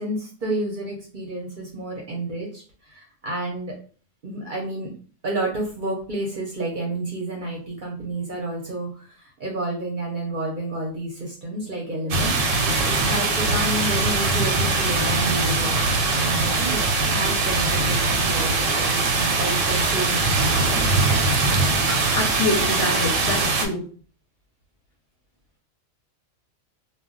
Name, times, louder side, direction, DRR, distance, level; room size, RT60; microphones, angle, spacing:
voice 1, 0.0-3.7 4.2-4.9 5.2-15.8 16.1-16.8 17.1-20.4, right 1 dB, 50° right, -1 dB, 0.7 m, -30 dB
sound 1, 12.1-23.7, right 3 dB, 80° right, 0.9 m, -21 dB
voice 2, 22.1-23.8, left 2 dB, 60° left, 1 dB, 0.8 m, -26 dB
2.2 x 2.2 x 3.7 m, 0.41 s
omnidirectional pair, 1.3 m